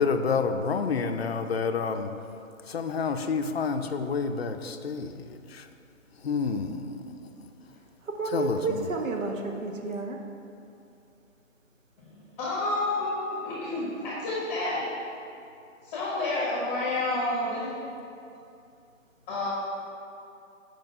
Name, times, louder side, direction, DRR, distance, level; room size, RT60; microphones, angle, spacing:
voice 1, 0.0-2.1 2.7-5.7 6.2-7.5 8.3-8.9, left 5 dB, 50° left, 7 dB, 0.5 m, -29 dB
voice 2, 8.0-10.2, right 4 dB, 70° right, 2 dB, 1.1 m, -31 dB
voice 3, 12.0-14.8 15.8-17.7 19.3-19.5, left 2 dB, 10° left, -6 dB, 0.9 m, -30 dB
7.7 x 5.1 x 5.3 m, 2.6 s
hypercardioid pair, 160°, 40 cm